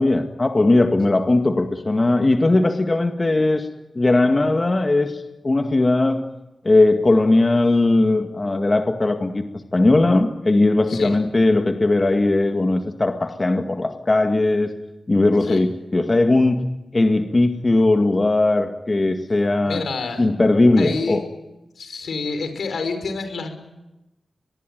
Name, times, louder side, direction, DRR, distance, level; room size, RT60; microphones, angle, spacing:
voice 1, 0.0-3.7 4.0-6.2 6.6-9.5 9.7-14.7 15.1-16.6 16.9-19.8 20.2-21.2, left 2 dB, 35° left, 5 dB, 2.0 m, -18 dB
voice 2, 19.6-20.3 20.8-21.2 21.8-23.6, left 4 dB, 85° left, 8 dB, 5.8 m, -28 dB
24.5 x 22.0 x 9.4 m, 0.98 s
cardioid pair, 65°, 0 cm